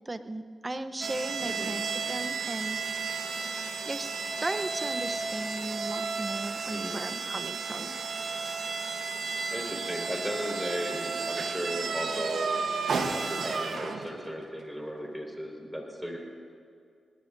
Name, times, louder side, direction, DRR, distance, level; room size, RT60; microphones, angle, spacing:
voice 1, 0.0-2.8 3.8-4.1 4.4-7.9, right 2 dB, 30° right, 9 dB, 0.9 m, -36 dB
sound 1, 1.0-14.2, right 4 dB, 75° right, 1.1 m, -33 dB
voice 2, 1.4-1.7 6.7-7.0 9.5-12.6 13.0-16.3, equal, 5° right, 0 dB, 4.9 m, -36 dB
24.5 x 19.5 x 2.7 m, 2.3 s
cardioid pair, 55°, 0 cm